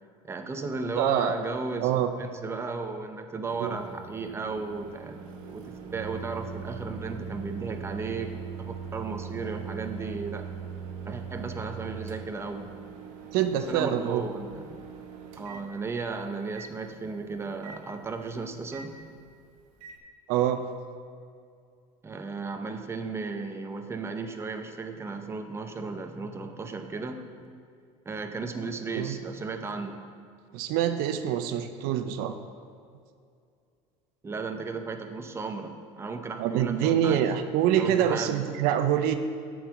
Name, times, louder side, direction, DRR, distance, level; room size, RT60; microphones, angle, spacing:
voice 1, 0.2-10.5 11.1-12.7 13.7-14.7 15.4-19.1 22.0-27.5 28.1-30.0 34.2-37.3 37.8-38.5, right 4 dB, 15° right, 6 dB, 0.6 m, -35 dB
voice 2, 1.0-1.3 1.8-2.1 3.6-3.7 13.3-14.2 20.3-20.6 28.9-29.2 30.5-32.4 36.4-39.1, right 10 dB, 65° right, 9 dB, 0.5 m, -25 dB
Microwave oven, 3.5-20.0, right 6 dB, 85° right, 1.0 m, -41 dB
7.7 x 4.8 x 7.0 m, 2.3 s
supercardioid pair, 110°, 17 cm